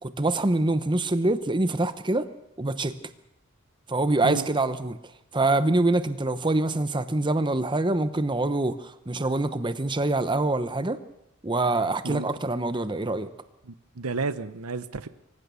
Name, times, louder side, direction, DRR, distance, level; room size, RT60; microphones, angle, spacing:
voice 1, 0.0-2.3 2.6-2.9 3.9-5.0 5.3-11.0 11.4-13.3, right 2 dB, 20° right, 12 dB, 0.9 m, -25 dB
voice 2, 13.6-15.1, right 4 dB, 85° right, 13 dB, 0.9 m, -31 dB
25.0 x 15.5 x 7.0 m, 0.86 s
head